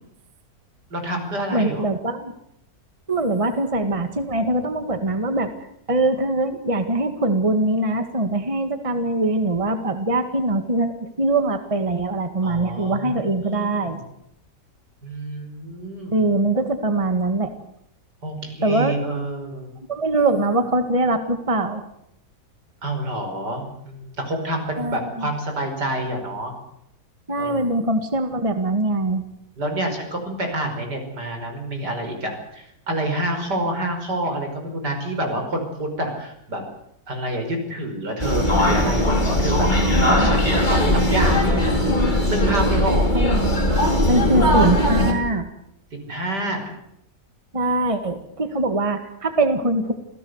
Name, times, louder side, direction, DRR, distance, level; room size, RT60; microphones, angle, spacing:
voice 1, 0.9-1.9 12.4-14.0 15.0-16.2 18.2-19.7 22.8-26.5 27.4-27.8 29.6-36.6 37.1-39.7 40.0-42.0 42.3-43.1 46.0-46.7, right 1 dB, 75° right, 4 dB, 6.0 m, -28 dB
voice 2, 1.5-2.3 3.1-5.5 5.9-14.0 16.1-17.5 18.6-19.0 19.9-21.8 24.8-25.3 27.3-29.2 39.8-40.3 43.1-43.4 44.1-45.5 47.5-49.9, right 2 dB, 20° right, 8 dB, 1.9 m, -22 dB
sound 1, 38.2-45.1, left 1 dB, 25° left, 4.4 m, -19 dB
27.0 x 17.0 x 8.1 m, 0.75 s
omnidirectional pair, 1.8 m